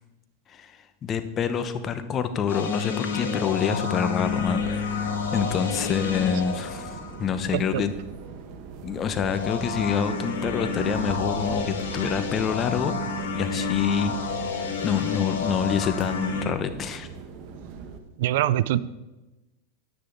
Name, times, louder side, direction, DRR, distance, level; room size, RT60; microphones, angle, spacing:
voice 1, 1.0-7.9 8.8-12.9 13.3-17.1, left 7 dB, 30° left, 10 dB, 0.9 m, -27 dB
sound 1, 2.5-7.6 9.2-16.5, left 4 dB, 90° left, 2.0 m, -30 dB
sound 2, 4.2-18.0, right 5 dB, 45° right, 1.3 m, -40 dB
voice 2, 7.5-7.8 18.2-18.8, right 13 dB, 70° right, 17 dB, 0.4 m, -23 dB
10.0 x 9.4 x 4.0 m, 1.1 s
hypercardioid pair, 120°, 0 cm